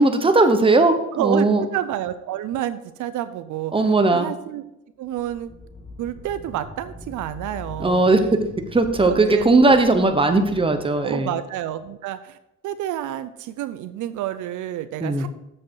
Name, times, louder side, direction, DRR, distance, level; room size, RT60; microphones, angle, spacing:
voice 1, 0.0-1.6 3.7-4.3 7.8-8.4 8.7-11.3 15.0-15.2, right 2 dB, 15° right, 7 dB, 1.0 m, -18 dB
voice 2, 1.1-1.5 1.7-3.7 4.1-4.6 5.0-5.5 6.0-8.1 9.0-9.8 11.0-12.4 12.6-15.3, right 12 dB, 80° right, 12 dB, 0.6 m, -29 dB
sound 1, 5.0-11.5, left 2 dB, 15° left, 2.0 m, -42 dB
7.5 x 6.4 x 4.8 m, 0.88 s
cardioid pair, 90°, 30 cm